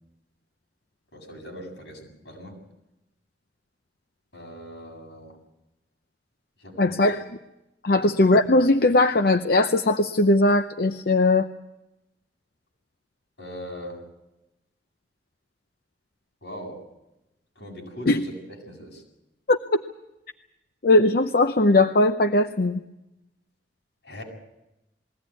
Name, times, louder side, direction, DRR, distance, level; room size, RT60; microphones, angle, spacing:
voice 1, 1.1-2.6 4.3-5.4 6.6-7.0 7.9-8.1 13.4-14.1 16.4-16.8 17.6-18.3 18.6-19.0 24.0-24.2, equal, 80° left, 0 dB, 7.8 m, -40 dB
voice 2, 6.8-7.2 7.8-11.5 18.1-18.2 19.5-19.8 20.8-22.8, left 2 dB, 55° left, 8 dB, 0.7 m, -19 dB
21.5 x 16.5 x 9.5 m, 0.94 s
head